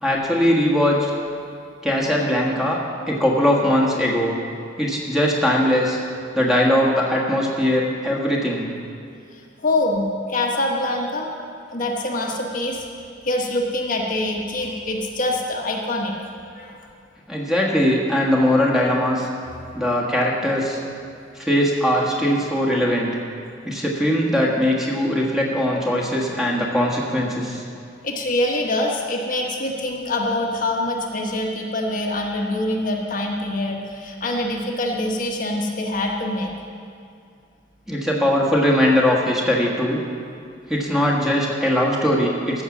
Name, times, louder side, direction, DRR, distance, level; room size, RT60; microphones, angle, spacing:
voice 1, 0.0-1.1 1.8-2.8 3.1-4.4 4.8-6.0 6.3-8.7 17.3-19.3 19.7-20.8 21.3-23.1 23.6-27.6 37.9-40.0 40.7-42.6, equal, ahead, -3 dB, 1.5 m, -20 dB
voice 2, 9.3-11.3 11.7-12.8 13.2-16.2 16.5-16.8 28.0-36.5, left 1 dB, 45° left, -1 dB, 1.2 m, -24 dB
14.5 x 6.4 x 7.2 m, 2.4 s
head